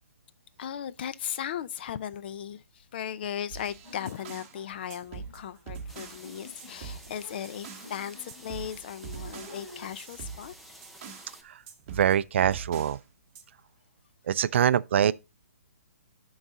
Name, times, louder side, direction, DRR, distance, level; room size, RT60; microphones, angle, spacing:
voice 1, 0.6-10.5, left 9 dB, 45° left, 0.5 m, -37 dB
sound 1, 3.5-4.6 4.9-6.3 6.6-7.9 8.3-11.3 11.7-13.0 13.3-13.4, right 6 dB, 30° right, 1.1 m, -43 dB
sound 2, 3.8-9.9, left 2 dB, 25° left, 3.3 m, -51 dB
sound 3, 5.9-11.4, right 1 dB, ahead, 0.6 m, -51 dB
voice 2, 11.9-13.0 14.3-15.1, right 9 dB, 55° right, 0.4 m, -24 dB
10.5 x 4.0 x 3.7 m
hypercardioid pair, 155°, 8 cm